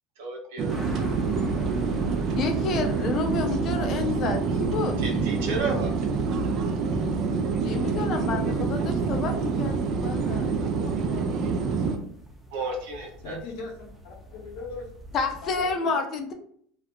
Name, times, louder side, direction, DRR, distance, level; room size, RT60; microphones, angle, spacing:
voice 1, 0.2-0.8 5.0-5.9 12.5-13.4, right 3 dB, 80° right, 1 dB, 0.7 m, -32 dB
sound 1, 0.6-12.0, right 4 dB, 50° right, 0.4 m, -26 dB
sound 2, 0.7-15.8, right 1 dB, 5° right, 0.7 m, -44 dB
voice 2, 2.4-5.0 7.6-11.9 15.1-16.3, left 4 dB, 50° left, 5 dB, 0.5 m, -30 dB
voice 3, 13.2-14.9 15.4-16.0, left 3 dB, 75° left, 1 dB, 0.9 m, -39 dB
2.4 x 2.1 x 2.9 m, 0.62 s
supercardioid pair, 100°, 0 cm